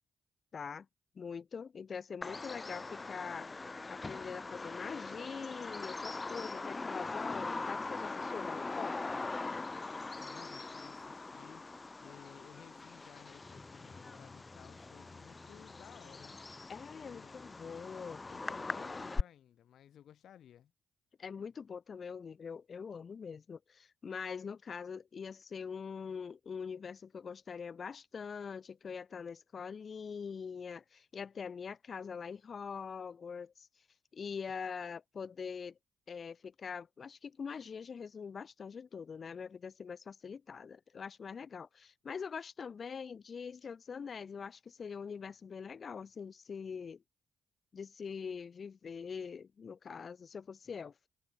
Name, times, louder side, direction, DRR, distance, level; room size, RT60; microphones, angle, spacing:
voice 1, 0.5-0.9 1.2-3.5 3.9-9.1 16.7-18.2 21.2-33.7 34.1-35.7 36.1-47.0 47.7-51.1, left 6 dB, 50° left, 0.6 m, -43 dB
Bird vocalization bird call bird song, 2.2-19.2, left 3 dB, 30° left, 1.0 m, -41 dB
voice 2, 10.1-11.7 12.0-16.4 16.9-17.3 18.3-20.7, left 10 dB, 65° left, 4.2 m, -57 dB
hypercardioid pair, 40°, 0 cm